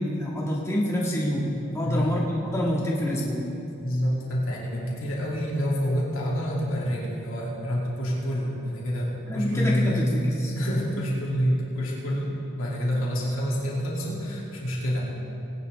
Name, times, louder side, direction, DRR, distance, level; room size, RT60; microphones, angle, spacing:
voice 1, 0.0-3.5 9.3-10.5, equal, 15° left, -4 dB, 1.6 m, -27 dB
voice 2, 1.6-2.1 3.8-10.1 10.5-15.0, equal, 70° left, -4 dB, 2.6 m, -27 dB
20.0 x 10.5 x 3.4 m, 2.9 s
head